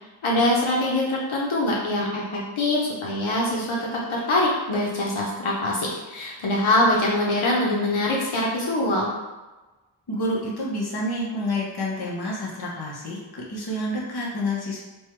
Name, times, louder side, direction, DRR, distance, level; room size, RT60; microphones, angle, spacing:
voice 1, 0.2-9.1, left 1 dB, 90° left, -4 dB, 0.8 m, -23 dB
voice 2, 10.1-14.8, left 1 dB, 55° left, -5 dB, 1.0 m, -28 dB
3.3 x 2.3 x 4.4 m, 1.2 s
wide cardioid pair, 110°, 47 cm